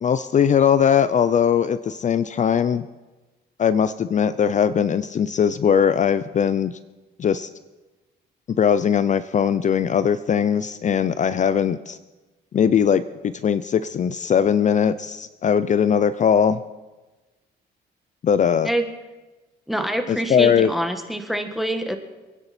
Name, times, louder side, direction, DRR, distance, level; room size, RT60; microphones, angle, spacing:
voice 1, 0.0-2.9 3.6-6.8 7.2-7.5 8.5-12.0 12.5-16.6 18.2-18.7 20.1-20.7, left 8 dB, 40° left, 14 dB, 0.5 m, -20 dB
voice 2, 19.7-22.0, right 1 dB, ahead, 6 dB, 1.5 m, -25 dB
27.0 x 9.7 x 4.3 m, 1.2 s
cardioid pair, 95°, 18 cm